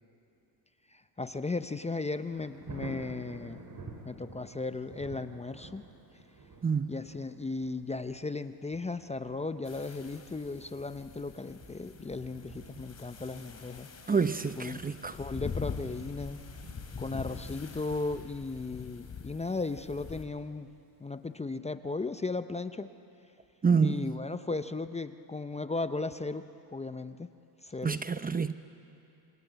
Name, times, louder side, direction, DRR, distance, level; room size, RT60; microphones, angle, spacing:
voice 1, 0.9-3.7 4.0-5.8 6.9-13.9 14.6-14.8 15.1-16.4 17.0-20.7 21.0-22.9 23.8-26.4 26.7-27.3 27.6-28.0, left 3 dB, 15° left, 10 dB, 0.7 m, -36 dB
Thunder, 2.0-20.8 21.3-21.4, right 3 dB, 40° right, 5.2 m, -51 dB
sound 1, 9.6-20.2, left 5 dB, 30° left, 3.5 m, -44 dB
voice 2, 14.1-15.1 23.6-24.2 27.8-28.5, right 5 dB, 20° right, 11 dB, 0.8 m, -27 dB
27.5 x 26.5 x 8.1 m, 2.7 s
supercardioid pair, 95°, 48 cm